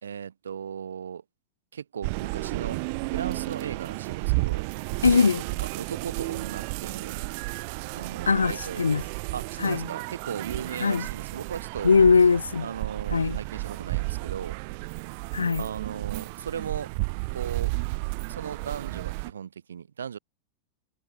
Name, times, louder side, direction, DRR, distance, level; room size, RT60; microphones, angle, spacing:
voice 1, 0.0-1.2 1.7-2.8 3.1-4.7 5.6-7.3 7.9-9.1 9.3-11.9 12.6-14.6 15.6-16.9 17.3-17.7 18.3-20.2, right 7 dB, 70° right, 2.5 m, -37 dB
sound 1, 2.0-19.3, right 31 dB, 45° right, 0.8 m, -32 dB
voice 2, 5.0-5.4 8.3-9.0 9.6-9.8 10.8-11.1 11.8-12.7 13.1-13.4 15.3-15.6, left 5 dB, 75° left, 0.4 m, -20 dB
figure-of-eight pair, 90°, 0 cm